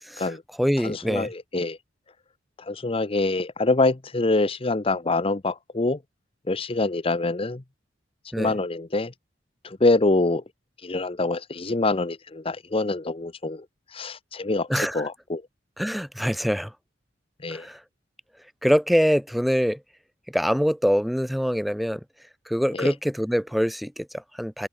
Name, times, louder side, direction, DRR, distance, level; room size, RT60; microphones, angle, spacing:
voice 1, 0.0-1.3 8.3-8.5 14.7-15.1 15.8-16.7 17.5-17.8 18.6-19.8 20.3-22.0 22.5-24.7, equal, ahead, 1.1 m, -24 dB
voice 2, 0.8-1.8 2.6-6.0 6.5-7.6 8.4-9.1 9.6-10.4 10.8-13.7 13.9-14.7 14.9-15.4 17.4-17.7 22.7-22.9, left 2 dB, 30° left, 0.8 m, -25 dB
open air
head